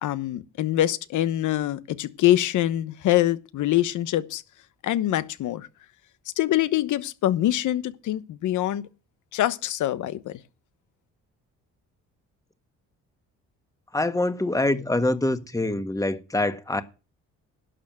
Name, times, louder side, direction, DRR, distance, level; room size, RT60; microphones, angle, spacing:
voice 1, 0.0-4.4 4.8-5.7 6.4-8.8 9.3-10.4, left 13 dB, 80° left, 1.1 m, -24 dB
voice 2, 13.9-16.8, left 2 dB, 10° left, 1.5 m, -25 dB
11.5 x 6.8 x 7.6 m
cardioid pair, 90°, 30 cm